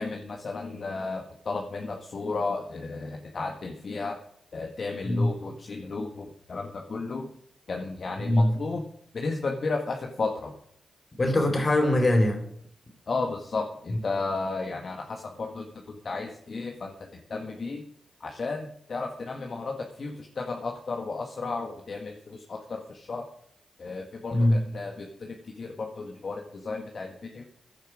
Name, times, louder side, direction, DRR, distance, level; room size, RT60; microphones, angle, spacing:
voice 1, 0.0-4.2 4.5-7.3 7.7-8.8 9.1-10.5 13.1-17.8 18.2-23.2 23.8-27.4, left 3 dB, 60° left, 2 dB, 1.8 m, -33 dB
voice 2, 8.2-8.5 11.2-12.5 24.3-24.6, left 1 dB, 45° left, 5 dB, 4.5 m, -22 dB
16.0 x 10.5 x 5.0 m, 0.67 s
supercardioid pair, 40°, 0 cm